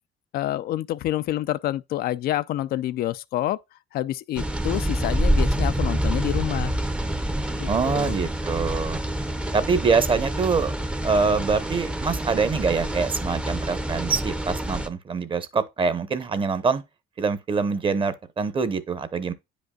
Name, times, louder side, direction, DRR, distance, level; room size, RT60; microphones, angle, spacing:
voice 1, 0.3-3.6 3.9-6.8 7.5-8.2, left 14 dB, 65° left, 0.4 m, -28 dB
sound 1, 4.4-14.9, right 1 dB, 5° right, 0.6 m, -27 dB
voice 2, 7.7-9.0 9.5-10.7 11.0-16.8 17.2-19.3, right 5 dB, 30° right, 0.8 m, -24 dB
9.4 x 5.2 x 2.3 m
cardioid pair, 110°, 17 cm